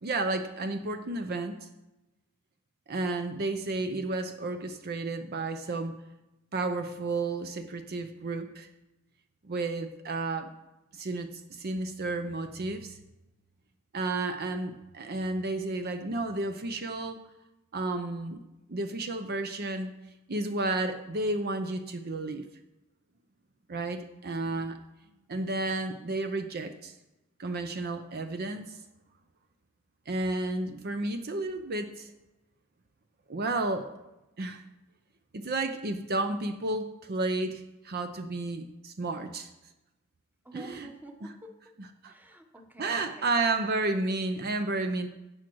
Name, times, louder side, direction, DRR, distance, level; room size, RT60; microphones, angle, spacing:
voice 1, 0.0-1.7 2.9-5.9 6.5-8.7 9.4-10.5 10.9-13.0 13.9-17.2 17.7-18.4 18.7-19.9 20.3-22.4 23.7-24.8 25.3-26.9 27.4-28.8 30.1-32.1 33.3-33.9 34.4-34.6 35.3-39.5 40.5-40.9 42.0-42.1 42.8-45.1, right 2 dB, 50° right, 8 dB, 0.7 m, -32 dB
voice 2, 40.4-41.7 42.1-43.4, right 1 dB, 10° right, 5 dB, 1.0 m, -49 dB
16.5 x 6.0 x 4.6 m, 0.98 s
head